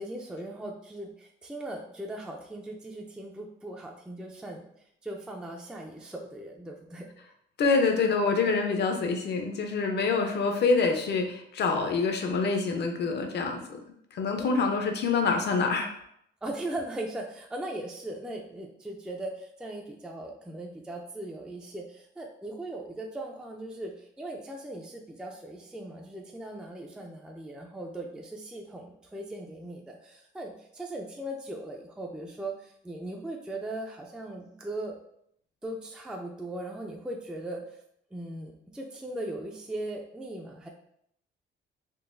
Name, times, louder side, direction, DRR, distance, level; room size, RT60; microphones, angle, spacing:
voice 1, 0.0-4.6 5.0-7.1 14.4-14.7 16.4-35.0 35.6-37.6 38.1-40.7, right 1 dB, 5° right, 0 dB, 0.4 m, -39 dB
voice 2, 7.6-13.8 14.1-15.9, left 4 dB, 60° left, 4 dB, 0.6 m, -26 dB
3.8 x 2.5 x 2.6 m, 0.73 s
cardioid pair, 90°, 20 cm